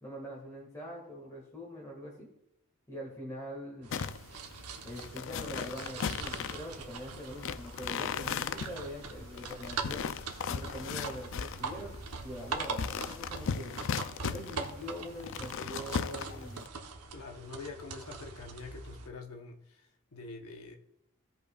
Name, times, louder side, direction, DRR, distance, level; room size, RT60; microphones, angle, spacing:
voice 1, 0.0-2.3 2.9-3.9 4.8-10.1 10.5-11.9 12.2-13.7 14.3-16.7, equal, 15° left, -3 dB, 1.7 m, -43 dB
sound 1, 3.8-19.1, right 4 dB, 90° right, 0.9 m, -42 dB
sound 2, 3.9-16.7, left 7 dB, 60° left, 0.4 m, -38 dB
voice 2, 17.1-20.8, left 4 dB, 75° left, 2 dB, 0.8 m, -45 dB
16.0 x 5.3 x 2.3 m, 0.81 s
head